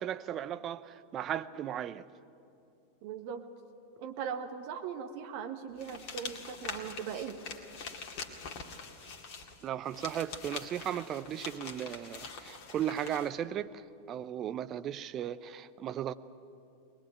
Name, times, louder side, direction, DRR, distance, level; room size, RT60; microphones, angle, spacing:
voice 1, 0.0-2.1 9.6-16.1, right 10 dB, 30° right, 0.7 m, -36 dB
voice 2, 3.0-3.4 4.0-7.4, right 7 dB, 45° right, 1.7 m, -39 dB
sound 1, 5.8-13.3, left 5 dB, 45° left, 2.2 m, -44 dB
22.0 x 21.0 x 9.2 m
figure-of-eight pair, 90°, 0 cm